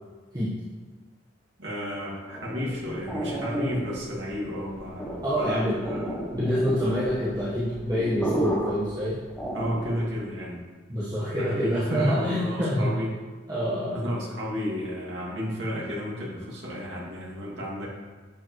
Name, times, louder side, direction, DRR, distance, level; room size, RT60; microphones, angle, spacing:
voice 1, 1.6-6.1 9.5-10.6 11.4-13.1 13.9-17.9, equal, 65° right, -5 dB, 2.4 m, -32 dB
sound 1, 2.3-10.1, right 1 dB, 5° left, 1.5 m, -33 dB
voice 2, 5.2-5.8 6.3-9.2 10.9-12.9 13.5-14.0, equal, 20° right, -10 dB, 1.5 m, -26 dB
10.5 x 7.5 x 3.2 m, 1.4 s
head